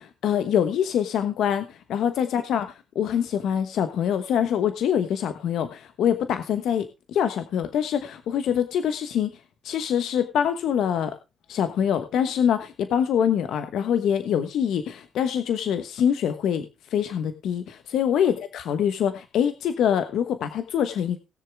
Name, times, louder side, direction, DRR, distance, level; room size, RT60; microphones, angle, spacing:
voice 1, 0.0-2.7 2.9-9.3 9.6-11.1 11.5-16.6 16.9-21.2, left 8 dB, 75° left, 9 dB, 1.2 m, -24 dB
19.0 x 6.9 x 3.5 m, 0.27 s
cardioid pair, 90°, 0 cm